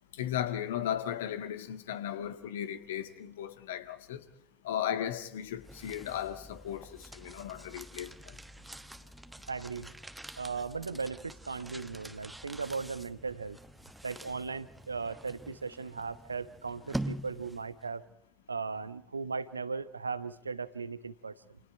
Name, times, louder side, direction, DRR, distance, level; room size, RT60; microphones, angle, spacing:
voice 1, 0.1-4.2 4.6-8.1, left 10 dB, 70° left, 1.8 m, -36 dB
sound 1, 5.3-17.9, right 1 dB, 5° right, 1.3 m, -45 dB
voice 2, 9.5-9.9 10.4-13.6 14.0-18.0 18.5-21.6, right 4 dB, 80° right, 0.9 m, -37 dB
29.0 x 28.0 x 4.5 m
figure-of-eight pair, 60°, 0 cm